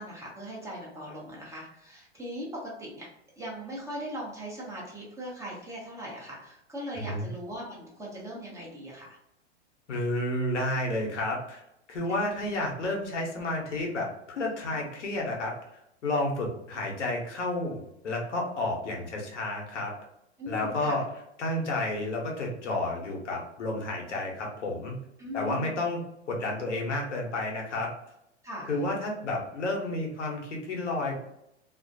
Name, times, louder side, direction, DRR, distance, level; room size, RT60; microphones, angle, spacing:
voice 1, 0.0-3.1 3.4-9.2 20.4-21.0 25.2-25.8 28.4-28.8, equal, 10° right, -5 dB, 0.7 m, -39 dB
voice 2, 6.9-7.3 9.9-11.6 11.9-15.5 16.0-19.9 20.5-21.0 21.4-25.0 25.3-26.0 26.3-27.9 28.7-31.1, left 2 dB, 90° left, -1 dB, 0.9 m, -31 dB
2.4 x 2.1 x 2.6 m, 0.81 s
hypercardioid pair, 120°, 35 cm